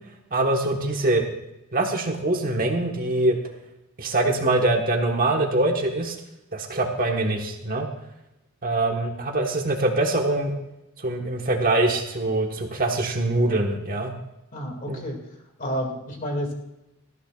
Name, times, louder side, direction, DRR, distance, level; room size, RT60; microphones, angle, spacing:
voice 1, 0.3-1.2 1.7-3.4 4.0-6.1 6.5-7.9 8.6-10.5 11.0-14.1 14.9-15.0, right 2 dB, 40° right, 2 dB, 1.3 m, -23 dB
voice 2, 14.5-15.2 15.6-16.5, equal, 40° left, 3 dB, 2.3 m, -30 dB
18.5 x 13.5 x 2.4 m, 0.90 s
head